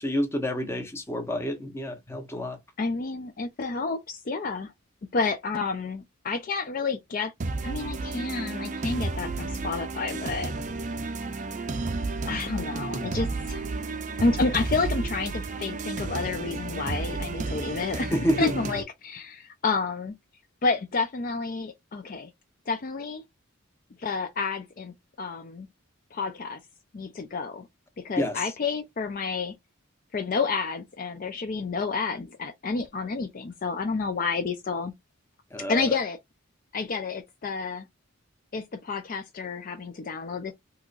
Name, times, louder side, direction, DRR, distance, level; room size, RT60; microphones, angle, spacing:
voice 1, 0.0-2.6 18.1-18.5 28.2-28.5 35.5-36.0, equal, 10° left, 0.7 m, -28 dB
voice 2, 2.8-4.7 5.1-7.3 7.6-10.5 12.3-13.7 14.2-20.1 20.6-22.3 22.7-23.2 24.0-25.7 26.1-26.6 26.9-27.7 28.0-29.5 30.1-34.9 35.7-36.2 36.7-37.9 38.5-40.5, left 4 dB, 40° left, 0.4 m, -30 dB
sound 1, 7.4-18.8, right 3 dB, 35° right, 0.5 m, -32 dB
3.8 x 2.9 x 2.4 m
head